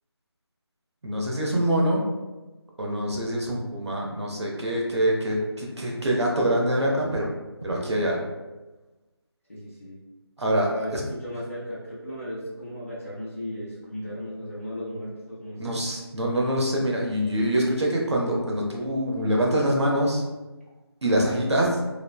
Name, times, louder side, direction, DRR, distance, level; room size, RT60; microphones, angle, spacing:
voice 1, 1.0-2.0 2.8-7.3 7.6-8.2 10.4-11.0 15.6-20.2 21.0-21.8, right 1 dB, 85° right, -2 dB, 0.8 m, -25 dB
voice 2, 9.5-10.0 10.7-15.8, equal, 30° left, -8 dB, 0.7 m, -36 dB
3.0 x 2.0 x 2.3 m, 1.1 s
figure-of-eight pair, 180°, 14 cm